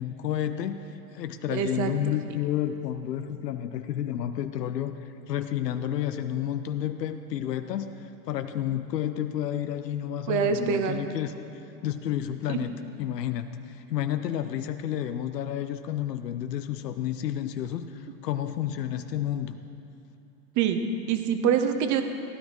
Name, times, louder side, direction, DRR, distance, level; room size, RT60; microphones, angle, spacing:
voice 1, 0.0-5.0 5.3-11.3 11.8-12.7 13.0-19.6, left 11 dB, 85° left, 9 dB, 0.8 m, -31 dB
voice 2, 1.5-1.9 10.3-11.0 12.5-12.6 20.6-22.0, right 7 dB, 40° right, 7 dB, 1.1 m, -25 dB
15.5 x 9.9 x 4.5 m, 2.8 s
hypercardioid pair, 110°, 47 cm